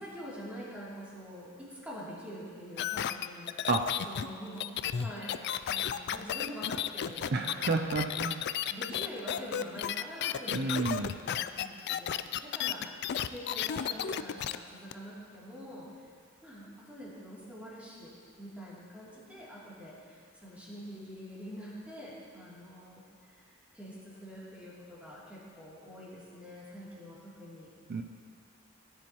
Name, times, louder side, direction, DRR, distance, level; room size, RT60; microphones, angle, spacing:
voice 1, 0.0-3.7 4.0-7.9 8.7-15.9 16.4-23.0 23.3-27.7, equal, 5° right, -8 dB, 3.0 m, -46 dB
sound 1, 2.8-14.6 14.9-15.0, left 9 dB, 55° left, 0.3 m, -33 dB
voice 2, 7.3-8.5 10.5-11.2 27.9-28.0, right 3 dB, 50° right, 4 dB, 0.5 m, -30 dB
17.5 x 10.5 x 3.0 m, 2.1 s
head